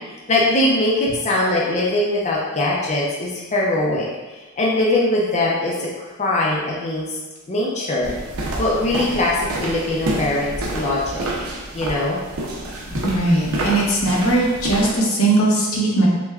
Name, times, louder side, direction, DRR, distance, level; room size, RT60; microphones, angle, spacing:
voice 1, 0.3-4.1 4.6-5.9 6.2-7.2 7.5-8.1 8.6-11.3 11.7-12.2, left 1 dB, 30° left, -4 dB, 0.5 m, -21 dB
sound 1, 8.0-15.0, right 1 dB, 85° right, 0.7 m, -28 dB
voice 2, 12.9-16.1, right 2 dB, 85° left, -3 dB, 0.9 m, -19 dB
5.9 x 2.2 x 2.4 m, 1.2 s
head